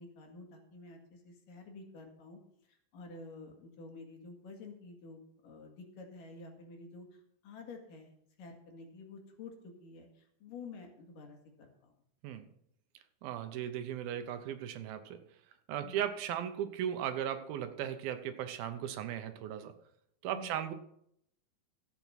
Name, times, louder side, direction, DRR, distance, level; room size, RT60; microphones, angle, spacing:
voice 1, 0.0-8.1 8.4-11.9 15.8-16.0 20.3-20.6, left 3 dB, 65° left, 2 dB, 3.5 m, -50 dB
voice 2, 13.2-15.2 15.7-19.7 20.2-20.7, right 10 dB, 80° right, 9 dB, 2.8 m, -37 dB
14.0 x 8.3 x 5.8 m, 0.72 s
omnidirectional pair, 4.3 m